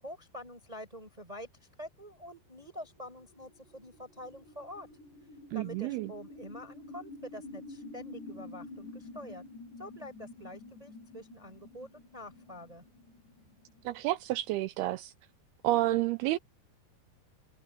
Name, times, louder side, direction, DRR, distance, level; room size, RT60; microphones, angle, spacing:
voice 1, 0.0-4.9 5.5-9.4 9.8-12.8, equal, 10° right, 6.4 m, -46 dB
sound 1, 2.4-14.5, left 2 dB, 75° left, 7.7 m, -49 dB
voice 2, 5.5-6.1 13.9-15.1 15.6-16.4, right 16 dB, 85° right, 2.3 m, -30 dB
omnidirectional pair, 5.0 m